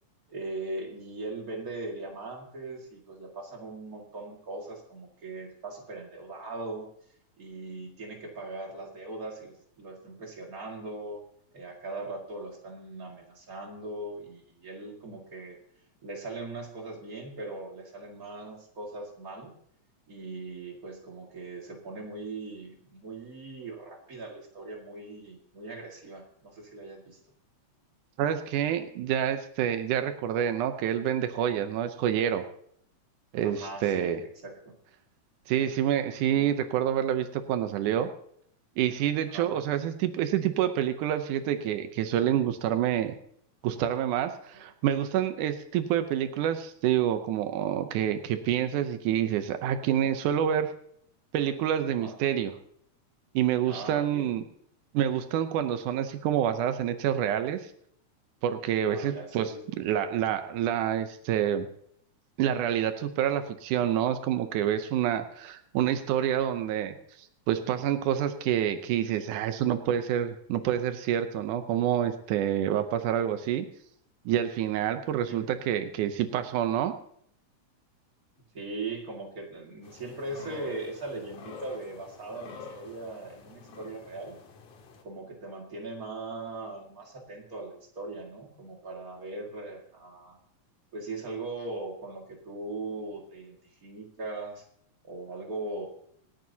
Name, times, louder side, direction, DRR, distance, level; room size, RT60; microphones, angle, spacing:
voice 1, 0.3-6.9 7.4-11.2 11.5-15.6 16.0-19.6 20.1-27.2 33.4-34.1 34.4-34.7 39.3-39.5 52.0-52.2 53.7-54.3 58.9-59.6 75.1-75.4 78.5-84.4 85.0-90.4 90.9-94.6 95.0-95.9, right 2 dB, 30° right, 1 dB, 2.1 m, -39 dB
voice 2, 28.2-32.4 33.3-34.2 35.5-38.1 38.8-43.2 43.6-50.7 51.3-52.5 53.3-54.4 54.9-57.7 58.4-61.7 62.4-73.7 74.3-77.0, right 10 dB, 90° right, 8 dB, 2.3 m, -27 dB
sound 1, 79.8-85.0, left 5 dB, 75° left, 3.0 m, -48 dB
27.0 x 9.1 x 2.8 m, 0.65 s
omnidirectional pair, 3.5 m